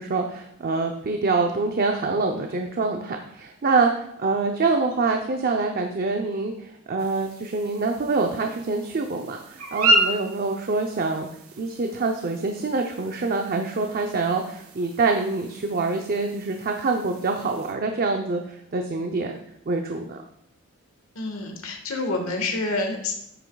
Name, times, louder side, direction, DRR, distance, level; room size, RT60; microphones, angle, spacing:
voice 1, 0.0-11.3 11.6-19.3 19.7-20.2, right 3 dB, 45° right, 3 dB, 0.6 m, -25 dB
sound 1, 7.0-17.7, right 1 dB, 75° right, 1.4 m, -31 dB
voice 2, 21.1-23.1, left 2 dB, 75° left, 3 dB, 1.5 m, -28 dB
9.9 x 7.9 x 2.3 m, 0.75 s
head